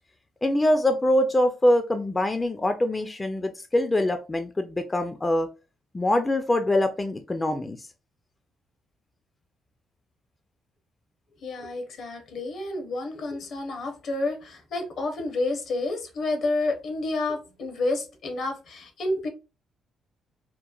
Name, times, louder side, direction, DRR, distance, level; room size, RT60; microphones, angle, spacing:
voice 1, 0.4-5.5 5.9-7.8, left 1 dB, 20° left, 0.3 m, -24 dB
voice 2, 11.4-19.3, left 2 dB, 65° left, 0.8 m, -29 dB
2.9 x 2.1 x 2.3 m
cardioid pair, 90°, 0 cm